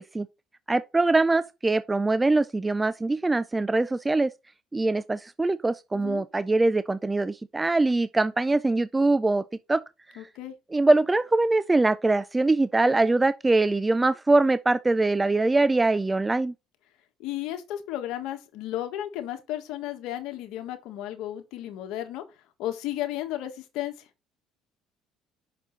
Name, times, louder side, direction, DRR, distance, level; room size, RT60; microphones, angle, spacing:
voice 1, 0.7-4.3 4.7-9.4 9.7-9.8 10.7-16.5, right 2 dB, 15° right, 0.4 m, -23 dB
voice 2, 5.9-6.2 10.2-10.5 17.2-22.2 22.6-24.1, left 13 dB, 75° left, 1.5 m, -34 dB
6.1 x 5.4 x 4.1 m
supercardioid pair, 80°, 0 cm